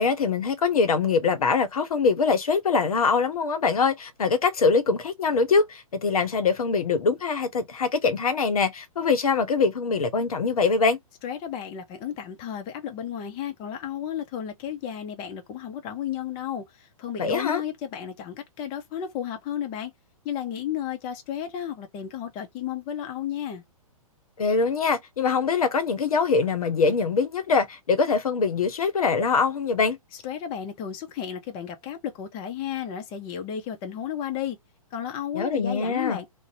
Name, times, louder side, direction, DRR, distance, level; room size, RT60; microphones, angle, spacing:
voice 1, 0.0-11.0 17.2-17.6 24.4-30.0 35.3-36.2, left 5 dB, 75° left, 0.7 m, -23 dB
voice 2, 11.2-16.6 17.0-19.9 20.2-23.6 30.2-34.6 34.9-36.3, left 9 dB, 25° left, 0.6 m, -33 dB
2.5 x 2.1 x 2.5 m
hypercardioid pair, 125°, 19 cm